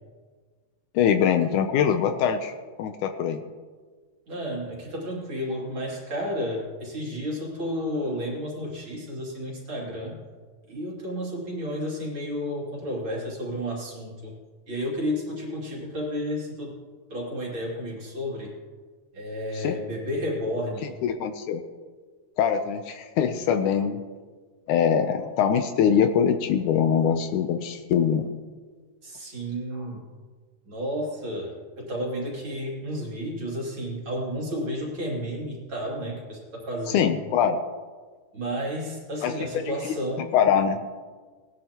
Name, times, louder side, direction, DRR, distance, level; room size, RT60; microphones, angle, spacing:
voice 1, 1.0-2.5 2.8-3.4 19.6-19.8 21.0-21.6 22.4-24.0 24.7-28.3 36.9-37.6 39.2-39.9 40.3-40.8, left 8 dB, 80° left, 8 dB, 2.0 m, -23 dB
voice 2, 4.3-10.2 10.7-14.3 14.7-16.8 17.1-18.5 19.1-20.9 29.0-30.1 30.7-37.2 38.3-40.3, equal, 40° right, -4 dB, 3.1 m, -32 dB
19.0 x 12.0 x 2.9 m, 1.5 s
omnidirectional pair, 3.7 m